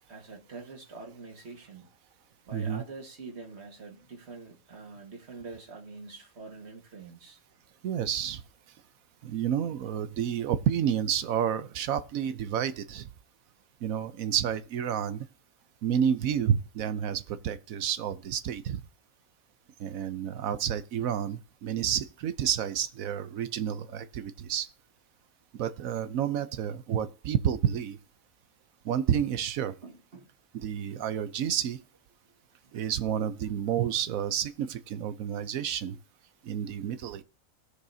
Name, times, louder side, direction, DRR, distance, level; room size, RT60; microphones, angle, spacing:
voice 1, 0.1-1.9 2.5-7.4 29.8-30.3 32.6-32.8 35.9-36.0, right 3 dB, 50° right, 2.1 m, -45 dB
voice 2, 2.5-2.8 7.8-8.4 9.2-13.1 13.8-15.3 15.8-18.8 19.8-24.7 25.5-28.0 28.8-29.7 30.5-31.8 32.7-36.0 36.4-37.2, right 9 dB, 80° right, 1.2 m, -30 dB
19.5 x 6.5 x 2.8 m
omnidirectional pair, 1.4 m